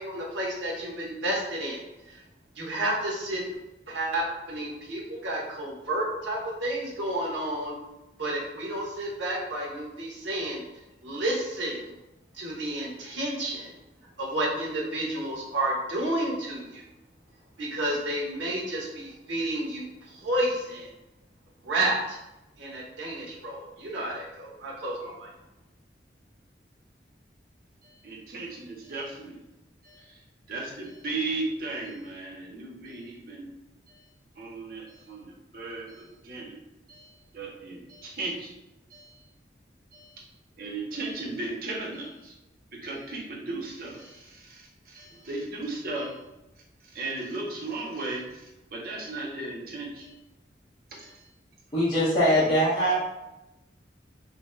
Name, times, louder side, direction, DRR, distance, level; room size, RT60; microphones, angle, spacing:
voice 1, 0.0-1.8 2.1-2.2 2.5-3.4 3.9-7.8 8.2-10.6 11.0-12.0 12.3-13.7 14.2-16.8 17.6-20.9 21.6-22.2 22.6-25.3, right 1 dB, 85° right, -3 dB, 0.8 m, -31 dB
voice 2, 28.0-29.4 29.8-30.2 30.5-33.5 34.4-36.6 36.9-38.5 38.9-39.2 39.9-40.1 40.6-42.3 42.8-46.2 46.9-50.1 50.9-51.2, right 2 dB, 55° right, -2 dB, 0.6 m, -36 dB
voice 3, 51.7-53.0, equal, 25° left, -11 dB, 0.6 m, -22 dB
2.6 x 2.2 x 3.1 m, 0.96 s
head